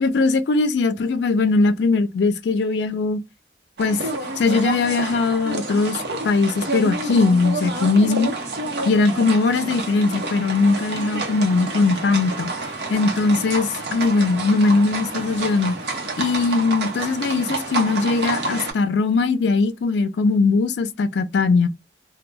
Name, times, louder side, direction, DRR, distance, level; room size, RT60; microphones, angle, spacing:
voice 1, 0.0-3.2 3.8-4.0 4.4-8.3 8.9-12.5 12.9-15.7 16.2-21.7, left 3 dB, 75° left, 0.4 m, -20 dB
sound 1, 3.8-18.7, right 2 dB, 70° right, 0.8 m, -29 dB
2.2 x 2.1 x 3.2 m
head